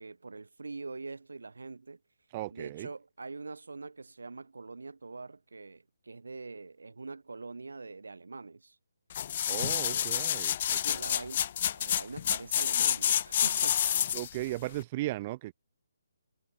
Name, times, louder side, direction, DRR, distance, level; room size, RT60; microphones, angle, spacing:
voice 1, 0.0-2.0 2.5-8.8 9.5-10.1 10.7-13.8 14.4-14.5, right 3 dB, 90° right, 4.8 m, -44 dB
voice 2, 2.3-2.9 9.5-10.6 10.9-11.0 14.1-15.5, right 17 dB, 20° right, 2.5 m, -36 dB
sound 1, 9.1-14.4 14.8-14.9, left 10 dB, 30° left, 0.8 m, -29 dB
hypercardioid pair, 170°, 0 cm